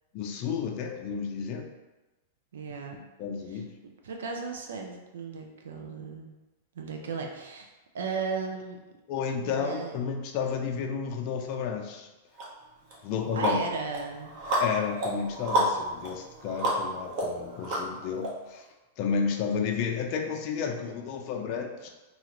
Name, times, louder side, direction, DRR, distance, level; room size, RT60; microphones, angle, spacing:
voice 1, 0.1-1.7 2.9-3.7 9.1-12.1 13.0-13.6 14.6-18.7 19.0-21.9, left 6 dB, 45° left, 2 dB, 0.4 m, -32 dB
voice 2, 2.5-3.0 3.5-3.6 4.0-6.4 6.7-8.8 9.4-10.0 13.3-14.3, right 4 dB, 85° right, 2 dB, 0.4 m, -36 dB
sound 1, 12.4-12.5 12.9-18.3, right 1 dB, 45° right, 0.8 m, -31 dB
2.9 x 2.4 x 2.9 m, 1.1 s
hypercardioid pair, 135°, 0 cm